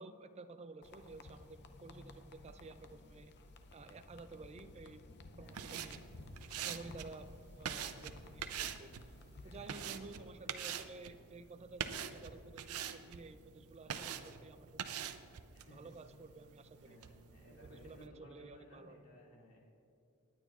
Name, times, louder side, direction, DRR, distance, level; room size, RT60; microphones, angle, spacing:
voice 1, 0.0-3.3 3.7-5.1 5.4-6.0 6.6-7.3 7.6-8.9 9.4-15.1 15.7-17.0 17.4-19.0, right 3 dB, 30° right, 10 dB, 0.4 m, -53 dB
sound 1, 0.8-9.9, left 2 dB, 50° left, 0.6 m, -55 dB
voice 2, 5.3-5.7 6.8-7.1 9.4-10.5 15.5-15.9 16.8-19.6, equal, 70° left, -4 dB, 2.5 m, -59 dB
sound 2, 5.4-18.1, right 8 dB, 80° right, 0.5 m, -46 dB
19.0 x 9.1 x 2.4 m, 2.7 s
head